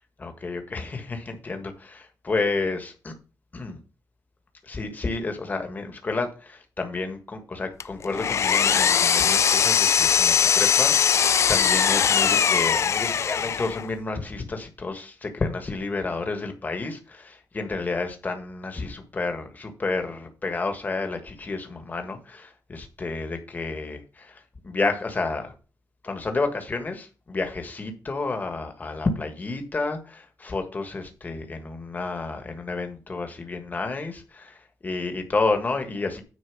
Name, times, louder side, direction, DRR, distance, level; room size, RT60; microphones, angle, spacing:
voice 1, 0.2-3.1 3.5-3.8 4.6-25.5 26.0-36.2, left 3 dB, 25° left, 1.5 m, -30 dB
Power tool, 7.8-13.9, left 7 dB, 50° left, 0.4 m, -21 dB
9.6 x 4.5 x 5.9 m
wide cardioid pair, 170°, 6 cm